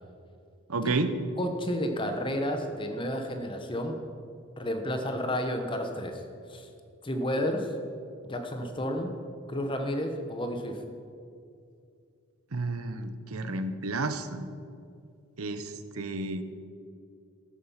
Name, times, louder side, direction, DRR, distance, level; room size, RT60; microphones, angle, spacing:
voice 1, 0.7-1.1 12.5-14.5 15.4-16.4, right 3 dB, 85° right, 10 dB, 0.9 m, -31 dB
voice 2, 1.4-4.0 4.6-6.2 6.5-6.7 7.0-7.7 8.2-9.1 9.5-10.8, equal, 25° left, 5 dB, 1.1 m, -31 dB
13.0 x 10.0 x 5.8 m, 2.4 s
head